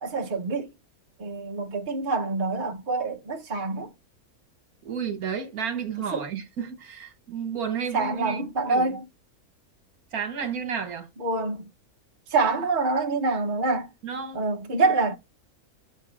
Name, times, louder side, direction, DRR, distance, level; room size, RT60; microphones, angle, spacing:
voice 1, 0.0-0.7 1.2-3.9 6.1-6.2 7.9-9.0 11.2-11.7 12.3-13.9 14.3-15.2, right 3 dB, 35° right, 1.1 m, -26 dB
voice 2, 4.8-8.4 8.7-9.0 10.1-11.1 14.0-14.4, right 7 dB, 80° right, 1.9 m, -32 dB
8.0 x 2.7 x 5.0 m
omnidirectional pair, 1.5 m